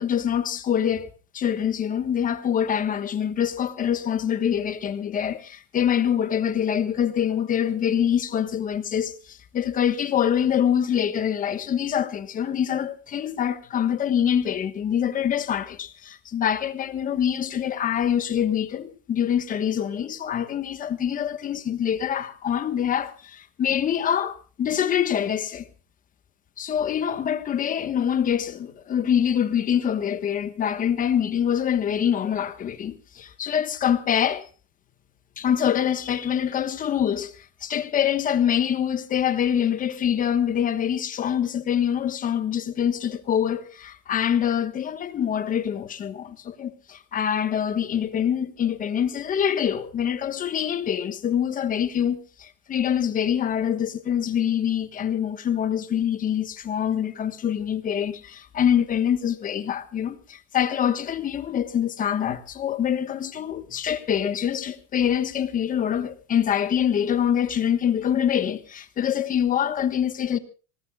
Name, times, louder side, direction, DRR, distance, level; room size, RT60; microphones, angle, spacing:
voice 1, 0.0-25.7 26.6-34.5 35.4-70.4, left 9 dB, 25° left, 1.3 m, -25 dB
26.5 x 19.0 x 2.3 m
supercardioid pair, 160°, 35 cm